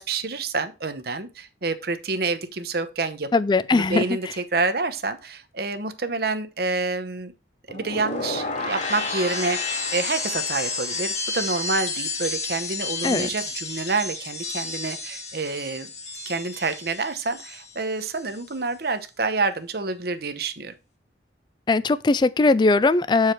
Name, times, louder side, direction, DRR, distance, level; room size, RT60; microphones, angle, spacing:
voice 1, 0.0-3.3 3.7-7.3 7.7-15.9 16.3-20.7, right 3 dB, 55° right, 0.9 m, -28 dB
voice 2, 3.3-4.3 13.0-13.3 21.7-23.3, left 3 dB, 25° left, 0.3 m, -20 dB
sound 1, 7.7-17.8 18.1-18.5, left 3 dB, 40° left, 2.3 m, -31 dB
8.2 x 4.8 x 4.5 m
head